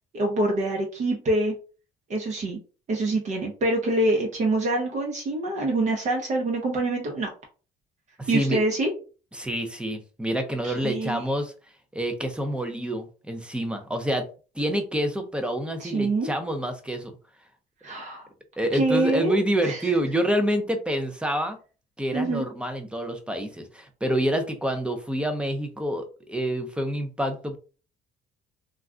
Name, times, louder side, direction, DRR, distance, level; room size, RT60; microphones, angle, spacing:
voice 1, 0.1-1.6 2.1-2.6 2.9-7.3 8.3-8.9 10.6-11.2 15.8-16.3 17.8-18.3 18.7-19.4 19.6-19.9 22.1-22.4, right 2 dB, 45° right, 0 dB, 0.8 m, -25 dB
voice 2, 8.2-8.6 9.3-11.5 11.9-14.3 14.6-17.1 18.6-21.6 22.0-27.6, equal, 5° right, 6 dB, 0.6 m, -27 dB
2.4 x 2.2 x 3.6 m, 0.35 s
cardioid pair, 110°, 17 cm